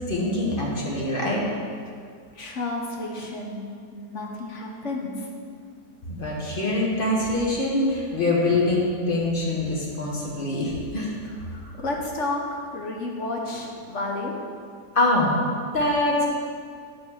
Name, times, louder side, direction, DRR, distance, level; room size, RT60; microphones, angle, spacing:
voice 1, 0.1-1.4 6.1-11.1 14.9-15.3 15.7-16.2, left 2 dB, 35° left, -4 dB, 1.6 m, -24 dB
voice 2, 2.3-3.6 3.9-5.3 11.4-14.3, left 2 dB, 50° left, 0 dB, 1.2 m, -31 dB
9.3 x 4.3 x 6.6 m, 2.2 s
omnidirectional pair, 1.7 m